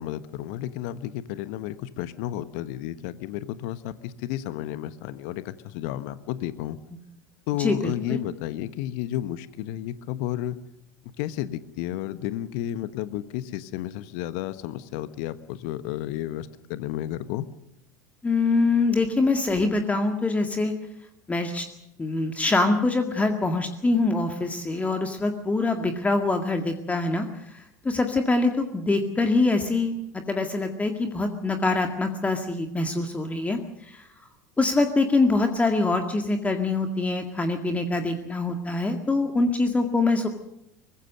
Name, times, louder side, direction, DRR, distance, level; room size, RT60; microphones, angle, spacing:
voice 1, 0.0-6.8 7.5-10.6 11.2-17.5, left 13 dB, 55° left, 14 dB, 1.2 m, -32 dB
voice 2, 7.6-8.2 18.2-20.7 21.3-21.7 22.0-27.3 27.5-30.0 30.3-34.1 34.6-40.3, left 3 dB, 15° left, 5 dB, 2.0 m, -24 dB
23.5 x 20.5 x 6.6 m, 0.83 s
figure-of-eight pair, 75°, 9 cm